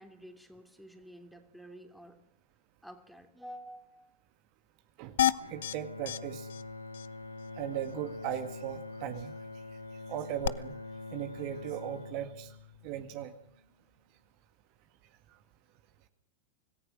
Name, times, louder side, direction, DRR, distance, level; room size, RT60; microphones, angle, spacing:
voice 1, 0.0-2.2 2.8-4.2, equal, ahead, 5 dB, 3.1 m, -50 dB
sound 1, 5.2-5.7 6.1-6.2 6.5-6.6 6.9-7.1 10.4-10.5, left 11 dB, 60° left, 0.8 m, -28 dB
Bowed string instrument, 5.4-13.6, left 3 dB, 80° left, 2.4 m, -45 dB
voice 2, 5.5-6.5 7.6-9.4 10.1-10.8 11.1-12.6 12.8-13.3, right 11 dB, 45° right, 8 dB, 1.9 m, -37 dB
26.0 x 19.0 x 6.3 m, 0.70 s
figure-of-eight pair, 90°, 0 cm